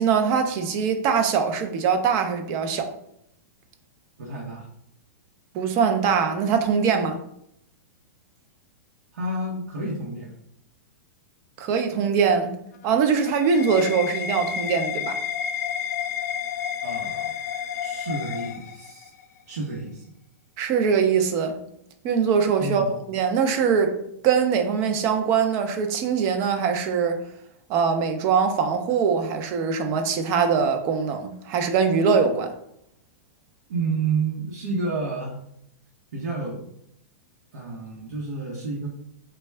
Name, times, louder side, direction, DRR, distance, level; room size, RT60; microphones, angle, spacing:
voice 1, 0.0-2.9 5.5-7.2 11.6-12.5 12.8-15.2 20.6-21.6 22.0-24.0 24.2-27.2 27.7-32.5, right 6 dB, 30° right, 6 dB, 0.4 m, -22 dB
voice 2, 4.2-4.7 9.1-10.3 16.8-17.3 17.8-19.1 19.5-20.0 22.6-22.9 33.7-35.4 36.1-36.7 37.5-38.9, right 3 dB, 85° right, -3 dB, 0.8 m, -30 dB
sound 1, 12.7-19.2, left 8 dB, 75° left, 0.4 m, -31 dB
3.4 x 2.2 x 3.2 m, 0.75 s
hypercardioid pair, 155°, 9 cm